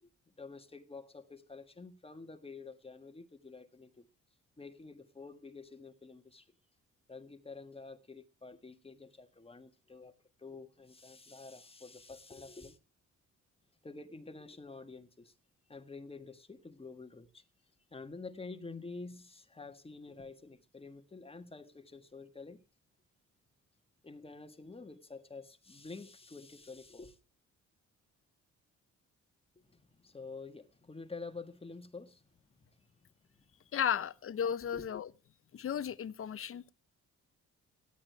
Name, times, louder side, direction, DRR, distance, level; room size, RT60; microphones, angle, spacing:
voice 1, 0.0-4.1 4.6-6.5 7.1-12.8 13.8-15.3 15.7-17.4 17.9-22.6 24.0-27.2 29.6-32.2 32.8-32.9 33.4-33.5 34.7-34.9, left 3 dB, 20° left, 1.6 m, -49 dB
voice 2, 33.7-35.1 35.5-36.7, left 8 dB, 45° left, 0.9 m, -34 dB
17.5 x 11.5 x 3.4 m
cardioid pair, 90°, 30 cm